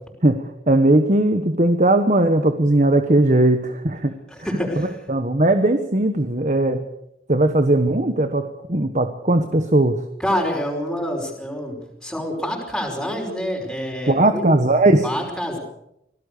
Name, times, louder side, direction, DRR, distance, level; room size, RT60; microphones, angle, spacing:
voice 1, 0.2-4.1 4.8-6.8 7.3-9.9 14.1-15.1, right 1 dB, 45° right, 8 dB, 1.3 m, -18 dB
voice 2, 4.3-5.0 10.2-14.4 15.0-15.6, equal, 5° left, 0 dB, 5.4 m, -27 dB
26.0 x 17.5 x 6.8 m, 0.79 s
head